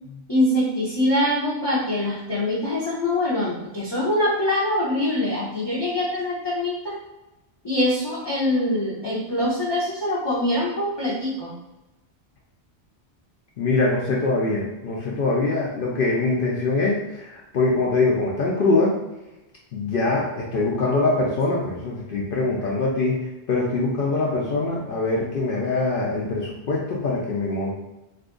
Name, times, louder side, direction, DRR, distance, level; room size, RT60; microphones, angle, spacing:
voice 1, 0.3-6.9 7.6-11.5, left 1 dB, 30° left, -8 dB, 0.6 m, -24 dB
voice 2, 13.6-18.9 19.7-23.2 23.5-27.7, left 3 dB, 60° left, -4 dB, 0.7 m, -23 dB
2.6 x 2.4 x 3.6 m, 1.0 s
omnidirectional pair, 1.1 m